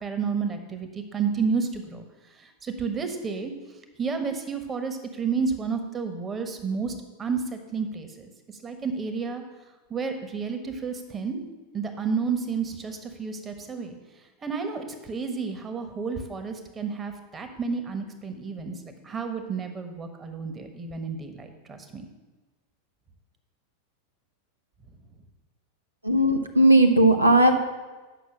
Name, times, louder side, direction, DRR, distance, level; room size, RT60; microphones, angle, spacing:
voice 1, 0.0-2.0 2.4-3.5 4.0-8.3 8.6-9.4 9.9-11.4 11.7-14.0 14.4-22.1, right 5 dB, 20° right, 6 dB, 1.2 m, -31 dB
voice 2, 26.0-27.6, right 1 dB, 85° right, 5 dB, 0.8 m, -17 dB
9.0 x 6.0 x 6.2 m, 1.2 s
figure-of-eight pair, 90°, 0 cm